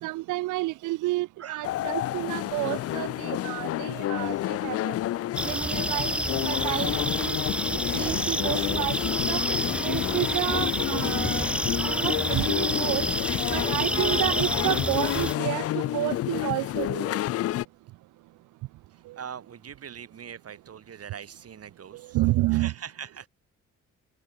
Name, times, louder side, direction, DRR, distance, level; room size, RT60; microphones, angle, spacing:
voice 1, 0.0-5.0 5.4-7.4 7.7-9.4 9.8-11.4 11.8-13.0 13.5-17.2 22.1-22.7, right 19 dB, 85° right, 0.6 m, -30 dB
sound 1, 1.6-17.6, left 14 dB, 55° left, 0.4 m, -29 dB
sound 2, 5.4-15.4, right 1 dB, 5° right, 0.6 m, -29 dB
voice 2, 18.9-22.2 22.5-23.3, right 8 dB, 50° right, 5.7 m, -42 dB
cardioid pair, 90°, 30 cm